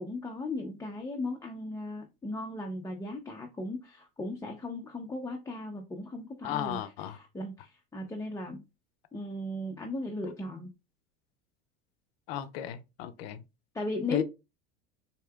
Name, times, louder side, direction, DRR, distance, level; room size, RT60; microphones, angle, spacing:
voice 1, 0.0-6.8 7.1-8.6 9.1-10.7 13.7-14.2, left 2 dB, 10° left, 0.6 m, -37 dB
voice 2, 6.4-7.2 12.3-13.4 14.1-14.2, left 10 dB, 75° left, 0.6 m, -35 dB
4.4 x 2.8 x 2.3 m
supercardioid pair, 105°, 31 cm